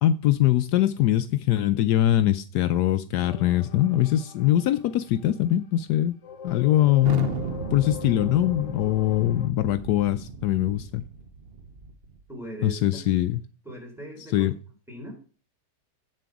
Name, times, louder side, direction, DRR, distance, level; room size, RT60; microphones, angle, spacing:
voice 1, 0.0-6.1 6.4-7.3 7.7-11.0 12.6-13.4 14.3-14.5, left 13 dB, 75° left, 1.1 m, -22 dB
sound 1, 3.2-5.6 6.2-9.5, left 6 dB, 50° left, 1.2 m, -42 dB
Thunder, 7.0-12.2, right 5 dB, 45° right, 0.9 m, -36 dB
voice 2, 12.3-13.0 13.6-14.5 14.9-15.2, right 1 dB, ahead, 3.7 m, -39 dB
8.5 x 7.7 x 4.6 m
omnidirectional pair, 1.8 m